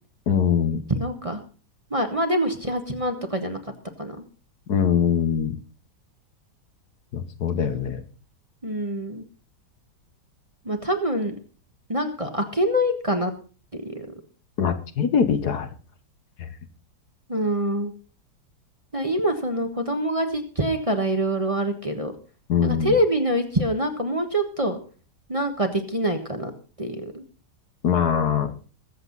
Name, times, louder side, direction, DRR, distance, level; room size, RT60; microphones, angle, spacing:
voice 1, 0.3-0.8 4.7-5.6 7.1-8.0 14.6-15.7 16.4-16.5 22.5-22.9 27.8-28.5, left 7 dB, 65° left, 9 dB, 1.7 m, -22 dB
voice 2, 0.9-1.4 1.9-3.6 4.0-4.2 8.6-9.2 10.6-11.3 11.9-13.3 13.7-14.1 17.3-17.9 18.9-22.1 22.6-24.8 25.3-26.5 26.8-27.3, right 1 dB, 20° right, 5 dB, 1.3 m, -25 dB
21.5 x 7.8 x 4.0 m, 0.37 s
omnidirectional pair, 1.9 m